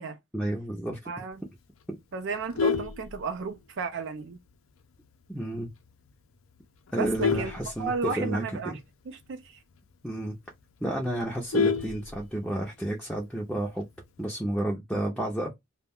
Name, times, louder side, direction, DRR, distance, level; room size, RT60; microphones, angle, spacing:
voice 1, 0.3-1.0 1.9-2.0 5.3-5.7 6.9-8.8 10.0-10.4 10.8-13.9 14.2-15.5, right 1 dB, ahead, 0.5 m, -31 dB
voice 2, 1.1-1.4 2.1-4.4 7.0-7.5 7.8-8.8 9.1-9.6, right 4 dB, 65° right, 0.4 m, -33 dB
Vehicle horn car horn honking, 2.3-3.8 4.2-4.5 4.8-4.9 5.3-5.4 5.7-6.1 6.6-8.5 8.8-8.9 9.2-9.3 9.7-9.8 10.2-10.3 10.5-12.6 13.8-14.2, left 5 dB, 90° left, 0.5 m, -29 dB
2.3 x 2.1 x 3.5 m
head